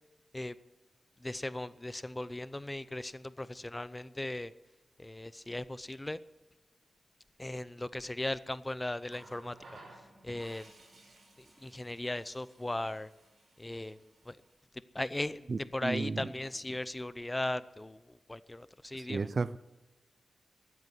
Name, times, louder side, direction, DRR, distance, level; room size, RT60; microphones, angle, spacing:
voice 1, 1.2-4.5 5.0-6.2 7.4-9.6 10.2-10.7 11.6-13.1 13.6-14.0 14.3-14.4 14.9-15.4 15.7-18.0 18.3-19.3, left 1 dB, 15° left, 0.6 m, -37 dB
Water tap faucet, 9.0-14.6 15.8-16.0, right 2 dB, 65° right, 5.6 m, -57 dB
voice 2, 15.5-16.3 18.9-19.6, right 4 dB, 50° right, 0.5 m, -34 dB
14.5 x 9.5 x 9.3 m
wide cardioid pair, 85°, 0 cm